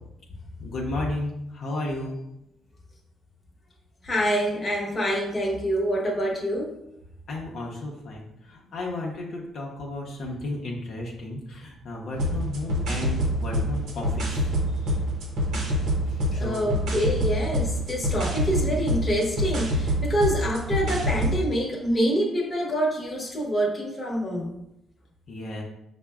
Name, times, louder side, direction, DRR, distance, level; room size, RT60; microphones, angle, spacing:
voice 1, 0.6-2.2 7.3-15.0 16.1-16.7 25.3-25.6, left 2 dB, 65° left, -2 dB, 0.6 m, -34 dB
voice 2, 4.0-6.7 16.4-24.5, equal, 30° left, -1 dB, 0.9 m, -26 dB
sound 1, 12.1-21.4, equal, 80° right, 0.7 m, -26 dB
5.6 x 2.1 x 2.3 m, 0.84 s
cardioid pair, 90°, 0 cm